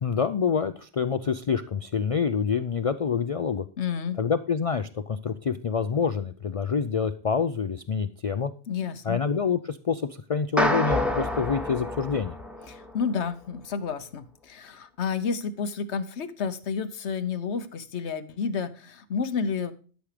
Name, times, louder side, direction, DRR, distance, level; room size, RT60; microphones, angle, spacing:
voice 1, 0.0-3.7 4.2-8.5 9.1-12.4, left 6 dB, 50° left, 11 dB, 0.4 m, -27 dB
voice 2, 3.8-4.2 8.7-9.2 12.7-19.7, left 6 dB, 85° left, 11 dB, 1.2 m, -30 dB
sound 1, 10.6-13.0, left 1 dB, ahead, 1.0 m, -28 dB
12.0 x 6.3 x 4.9 m, 0.39 s
omnidirectional pair, 1.1 m